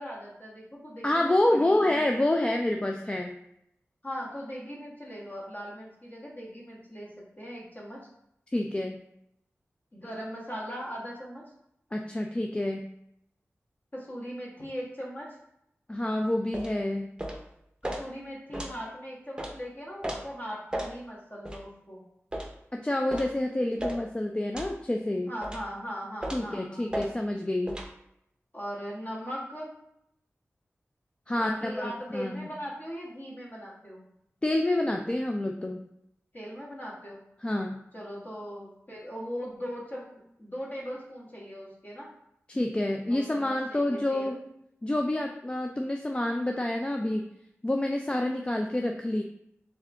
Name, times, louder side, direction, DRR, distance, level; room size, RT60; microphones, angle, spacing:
voice 1, 0.0-2.1 4.0-7.1 7.4-8.1 9.9-11.4 13.9-15.4 17.8-22.0 25.3-27.0 28.5-29.7 31.3-34.1 36.3-37.2 37.9-42.1 43.0-44.4, equal, 40° left, -5 dB, 1.5 m, -39 dB
voice 2, 1.0-3.3 8.5-9.0 11.9-12.8 15.9-17.1 22.7-25.3 26.3-27.8 31.3-32.5 34.4-35.8 37.4-37.8 42.5-44.4 44.8-47.3 47.6-49.2, left 1 dB, 20° left, 2 dB, 0.3 m, -28 dB
sound 1, 16.5-16.7 17.2-17.4 17.8-18.0 18.5-18.7 19.4-19.5 20.0-20.2 20.7-20.9 21.4-21.6 22.3-22.5 23.1-23.3 23.8-24.0 24.5-24.7 25.4-25.7 26.2-26.5 26.9-27.1 27.7-27.9, right 1 dB, 15° right, 0.7 m, -34 dB
3.6 x 3.5 x 3.4 m, 0.78 s
wide cardioid pair, 70°, 5 cm